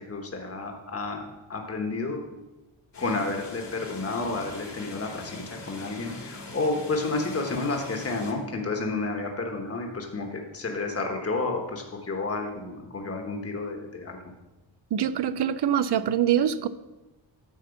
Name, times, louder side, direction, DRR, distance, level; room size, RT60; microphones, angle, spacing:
voice 1, 0.1-1.2 1.5-2.2 3.0-14.2, left 3 dB, 30° left, 2 dB, 1.2 m, -31 dB
sound 1, 2.9-8.3, left 3 dB, 65° left, 1.8 m, -42 dB
voice 2, 14.9-16.7, right 9 dB, 65° right, 15 dB, 0.5 m, -24 dB
10.5 x 4.3 x 7.0 m, 1.1 s
wide cardioid pair, 135°, 45 cm